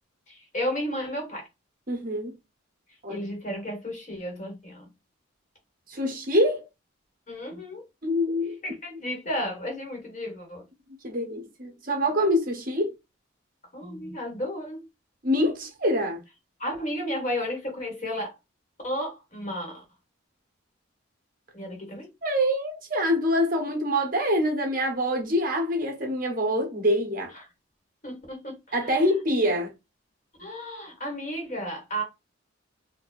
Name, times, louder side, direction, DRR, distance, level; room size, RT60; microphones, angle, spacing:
voice 1, 0.3-1.5 3.1-4.9 7.3-7.8 8.6-10.6 13.7-14.8 16.6-18.3 18.8-19.8 21.5-22.1 27.3-27.4 28.0-28.7 30.4-32.0, equal, 35° left, 1.5 m, -33 dB
voice 2, 1.9-2.3 3.0-3.2 5.9-6.6 8.0-8.6 11.0-12.9 15.2-16.2 22.2-27.3 28.7-29.7, equal, 45° right, 1.0 m, -25 dB
4.4 x 2.6 x 2.5 m
head